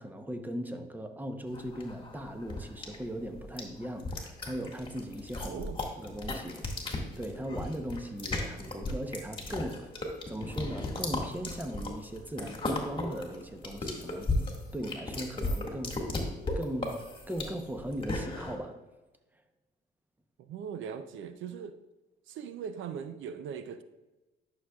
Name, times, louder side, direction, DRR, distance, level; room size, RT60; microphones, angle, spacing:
voice 1, 0.0-5.6 6.0-6.6 7.2-9.9 10.3-16.0 16.6-18.8, equal, 10° right, 6 dB, 0.8 m, -38 dB
sound 1, 1.5-18.6, left 2 dB, 25° left, 1.8 m, -36 dB
voice 2, 5.4-5.8 20.4-21.8 22.3-23.8, right 7 dB, 75° right, 10 dB, 0.5 m, -40 dB
11.0 x 6.4 x 2.3 m, 1.1 s
cardioid pair, 90°, 20 cm